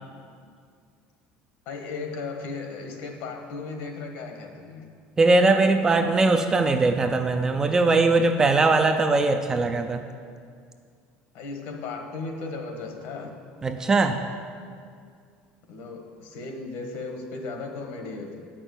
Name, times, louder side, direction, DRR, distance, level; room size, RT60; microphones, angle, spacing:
voice 1, 1.6-4.9 11.3-13.3 15.7-18.5, left 3 dB, 65° left, 4 dB, 1.4 m, -36 dB
voice 2, 5.2-10.0 13.6-14.2, right 3 dB, 15° right, 6 dB, 0.4 m, -20 dB
8.8 x 6.0 x 8.3 m, 2.2 s
cardioid pair, 170°, 4 cm